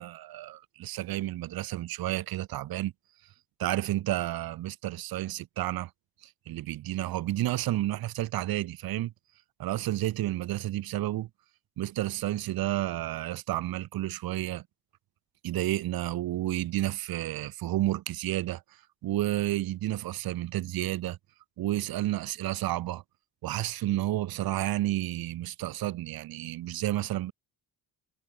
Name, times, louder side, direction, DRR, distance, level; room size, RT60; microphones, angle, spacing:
voice 1, 0.0-2.9 3.6-5.9 6.5-9.1 9.6-11.3 11.8-14.6 15.4-18.6 19.0-21.2 21.6-23.0 23.4-27.3, right 15 dB, 60° right, 0.6 m, -31 dB
cardioid pair, 110°, 41 cm